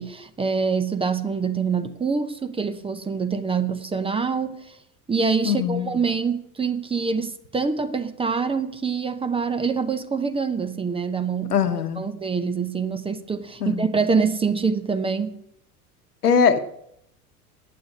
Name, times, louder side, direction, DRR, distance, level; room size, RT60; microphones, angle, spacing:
voice 1, 0.0-4.6 5.1-11.6 12.0-15.4, right 5 dB, 10° right, 0.8 m, -25 dB
voice 2, 5.4-5.9 11.5-12.0 13.6-13.9 16.2-16.6, left 6 dB, 80° left, 1.1 m, -21 dB
8.6 x 8.4 x 8.3 m
figure-of-eight pair, 80°, 45 cm